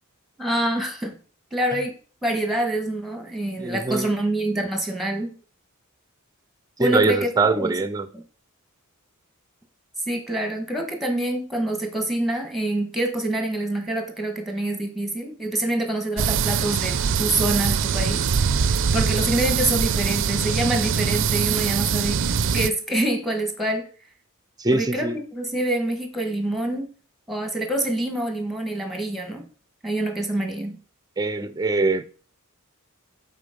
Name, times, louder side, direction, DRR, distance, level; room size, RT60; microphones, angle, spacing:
voice 1, 0.4-1.1 1.5-1.9 2.2-5.3 6.8-7.8 10.1-18.3 18.6-22.2 22.5-23.9 24.7-26.9 27.3-29.4 29.8-30.8, right 1 dB, ahead, 1.6 m, -26 dB
voice 2, 3.6-4.1 6.8-8.1 24.6-25.2 31.2-32.0, right 3 dB, 20° right, 0.6 m, -22 dB
sound 1, 16.2-22.7, right 6 dB, 60° right, 0.5 m, -23 dB
8.2 x 4.4 x 5.3 m
head